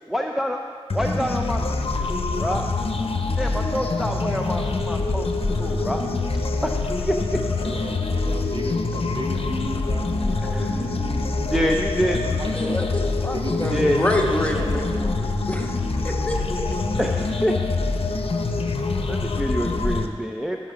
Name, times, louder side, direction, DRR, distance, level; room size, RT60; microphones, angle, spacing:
voice 1, 0.1-0.6 0.9-2.1 2.4-2.6 3.4-5.3 5.6-6.0 6.6-7.1 10.5-10.7 11.5-12.2 13.7-14.0 17.0-17.5 19.1-20.6, equal, 5° right, 2 dB, 0.5 m, -26 dB
sound 1, 0.9-20.1, left 3 dB, 65° left, 0.7 m, -25 dB
voice 2, 5.5-6.3 7.2-12.9 13.3-15.0, right 1 dB, 50° right, 2 dB, 1.0 m, -36 dB
voice 3, 12.5-16.7, left 1 dB, 15° left, 1 dB, 1.2 m, -28 dB
13.5 x 5.8 x 5.7 m, 2.1 s
wide cardioid pair, 75°, 10 cm